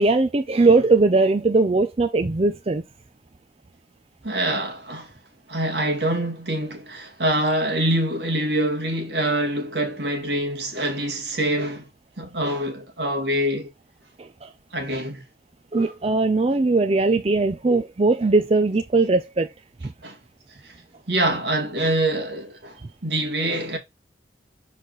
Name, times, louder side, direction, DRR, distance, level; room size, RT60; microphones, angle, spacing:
voice 1, 0.0-2.8 14.2-14.5 15.7-19.5, right 3 dB, 35° right, 0.5 m, -20 dB
voice 2, 4.2-5.1 5.5-11.9 12.2-13.7 14.7-15.2 20.0-20.2 20.6-20.7 21.1-23.8, right 1 dB, 70° right, 1.9 m, -25 dB
6.6 x 4.1 x 3.9 m
head